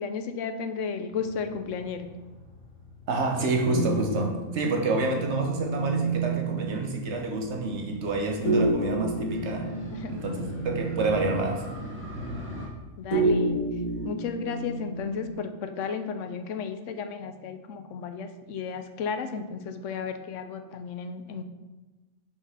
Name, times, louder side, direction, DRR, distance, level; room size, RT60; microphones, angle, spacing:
voice 1, 0.0-2.1 9.9-10.2 13.0-13.6 14.0-21.4, left 6 dB, 80° left, 8 dB, 1.0 m, -33 dB
Motorcycle, 1.1-12.7, equal, 10° right, 1.6 m, -43 dB
voice 2, 3.1-9.7 10.1-11.6, right 2 dB, 65° right, 2 dB, 1.3 m, -28 dB
sound 1, 3.7-6.8 8.4-11.4 13.1-15.3, right 2 dB, 40° left, 1.6 m, -29 dB
5.7 x 4.5 x 5.6 m, 1.2 s
omnidirectional pair, 1.3 m